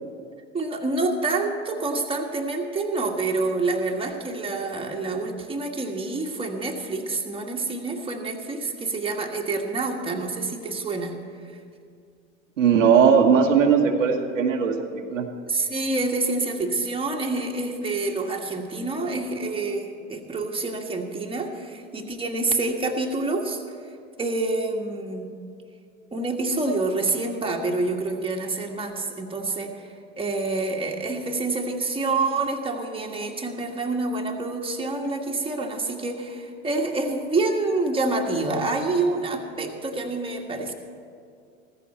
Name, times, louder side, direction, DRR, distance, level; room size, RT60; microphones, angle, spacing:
voice 1, 0.5-11.2 15.5-23.6 24.2-25.3 26.1-40.7, right 3 dB, 15° right, 1 dB, 1.7 m, -27 dB
voice 2, 12.6-14.8 15.1-15.3, right 6 dB, 85° right, 3 dB, 1.3 m, -18 dB
15.0 x 14.5 x 4.4 m, 2.3 s
hypercardioid pair, 85°, 38 cm